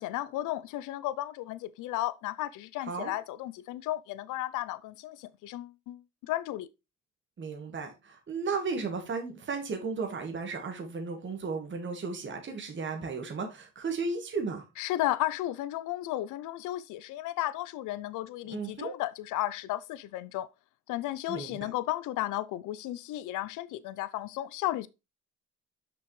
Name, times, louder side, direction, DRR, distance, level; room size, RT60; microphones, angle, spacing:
voice 1, 0.0-6.7 14.8-20.5 20.9-24.9, left 15 dB, 85° left, 0.5 m, -34 dB
voice 2, 7.4-14.6 18.5-18.9 21.3-21.7, right 4 dB, 40° right, 1.5 m, -35 dB
6.1 x 6.0 x 3.1 m
cardioid pair, 90°, 30 cm